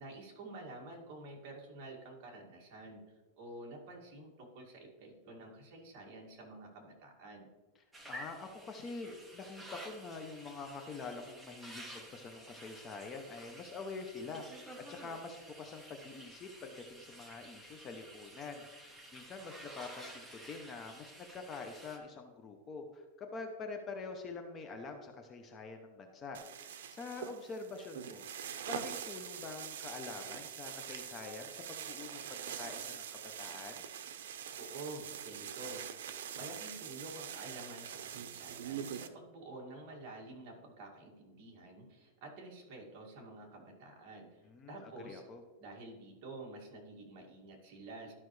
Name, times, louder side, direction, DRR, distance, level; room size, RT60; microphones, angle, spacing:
voice 1, 0.0-7.5 34.6-45.2 45.6-48.1, right 2 dB, 40° right, -1 dB, 2.1 m, -49 dB
sound 1, 7.9-22.0, right 1 dB, 5° right, 1.0 m, -52 dB
voice 2, 8.1-28.3 28.6-33.9 44.4-45.4, left 4 dB, 20° left, 4 dB, 0.7 m, -46 dB
sound 2, 26.3-39.1, right 9 dB, 80° right, 0.6 m, -44 dB
12.5 x 5.6 x 3.2 m, 1.3 s
supercardioid pair, 165°, 0 cm